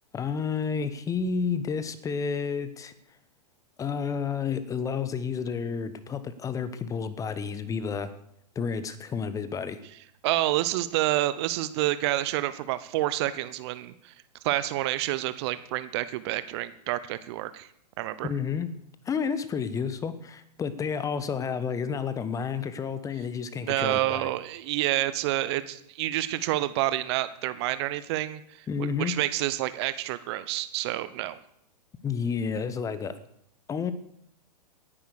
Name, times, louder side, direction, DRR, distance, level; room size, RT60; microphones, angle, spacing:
voice 1, 0.1-2.9 3.8-8.1 8.5-9.8 18.2-18.7 19.0-24.3 28.7-29.1 32.0-33.2 33.7-33.9, left 6 dB, 15° left, 15 dB, 1.2 m, -30 dB
voice 2, 10.2-14.1 14.4-17.7 18.0-18.3 23.6-31.4, right 15 dB, 40° right, 14 dB, 1.0 m, -28 dB
18.0 x 10.5 x 6.6 m, 0.72 s
figure-of-eight pair, 110°, 21 cm